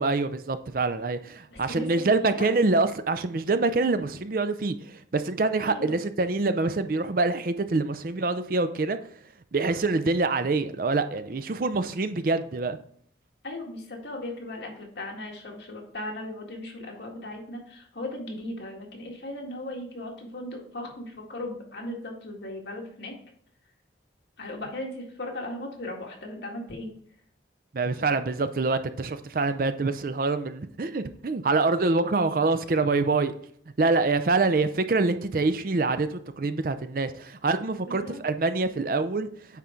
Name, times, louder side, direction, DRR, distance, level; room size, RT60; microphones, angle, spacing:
voice 1, 0.0-9.0 9.5-12.8 27.7-33.3 33.8-39.3, right 3 dB, 50° right, 0.5 m, -25 dB
voice 2, 1.5-2.5 5.6-6.0 13.4-23.2 24.4-26.9 37.9-38.2, left 1 dB, 70° left, 1.9 m, -37 dB
9.2 x 3.7 x 4.4 m
head